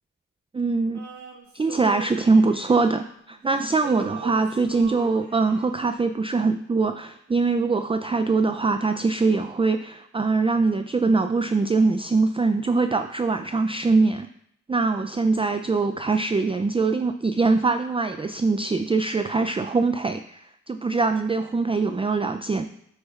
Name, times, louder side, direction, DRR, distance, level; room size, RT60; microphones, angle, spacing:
voice 1, 0.5-1.0 1.5-14.3 14.7-22.6, right 3 dB, 20° right, 8 dB, 0.4 m, -23 dB
Male singing, 0.9-3.4 3.7-5.8, right 4 dB, 65° right, 1.8 m, -41 dB
9.6 x 6.4 x 2.4 m, 0.71 s
cardioid pair, 70°, 31 cm